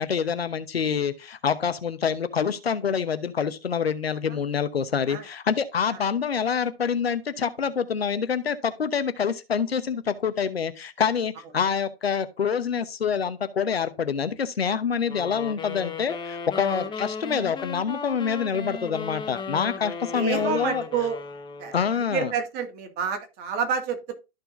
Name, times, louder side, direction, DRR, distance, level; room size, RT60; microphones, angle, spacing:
voice 1, 0.0-20.8 21.7-22.3, left 7 dB, 90° left, 1.0 m, -26 dB
sound 1, 15.1-21.9, left 5 dB, 15° left, 1.1 m, -36 dB
voice 2, 20.1-21.2 21.6-24.1, right 6 dB, 35° right, 2.0 m, -29 dB
13.5 x 4.6 x 2.6 m
hypercardioid pair, 115°, 30 cm